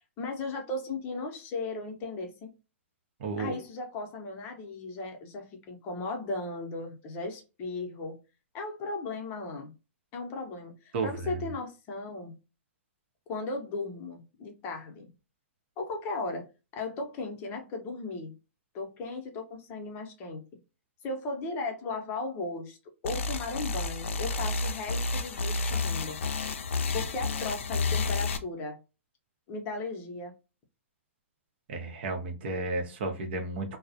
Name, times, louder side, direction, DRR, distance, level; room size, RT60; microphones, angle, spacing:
voice 1, 0.2-2.5 3.4-8.2 8.5-9.7 10.1-12.3 13.3-15.1 15.8-18.3 18.7-20.4 21.0-22.8 23.0-26.2 26.9-28.8 29.5-30.3, left 3 dB, 30° left, 3 dB, 0.7 m, -36 dB
voice 2, 3.2-3.6 10.9-11.5 31.7-33.8, right 3 dB, 50° right, 5 dB, 0.7 m, -33 dB
sound 1, 23.0-28.4, left 3 dB, 70° left, 0.4 m, -30 dB
2.3 x 2.0 x 2.6 m, 0.29 s
hypercardioid pair, 130°, 7 cm